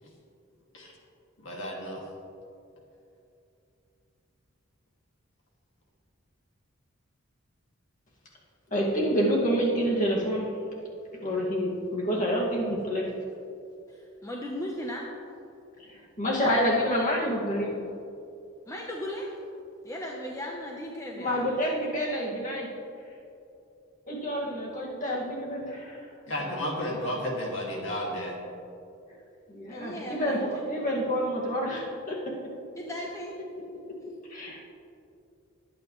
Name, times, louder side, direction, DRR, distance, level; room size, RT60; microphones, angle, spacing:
voice 1, 1.4-2.1 26.3-28.4, equal, 60° left, -2 dB, 2.4 m, -32 dB
voice 2, 8.7-10.5 11.1-13.1 15.9-17.7 21.2-22.7 24.1-26.0 29.5-32.4 34.3-34.6, equal, 35° left, -3 dB, 2.1 m, -28 dB
voice 3, 13.9-15.1 18.7-19.4 19.8-21.5 29.7-30.6 32.8-33.4, equal, 15° left, -2 dB, 0.9 m, -37 dB
21.0 x 8.6 x 3.2 m, 2.7 s
head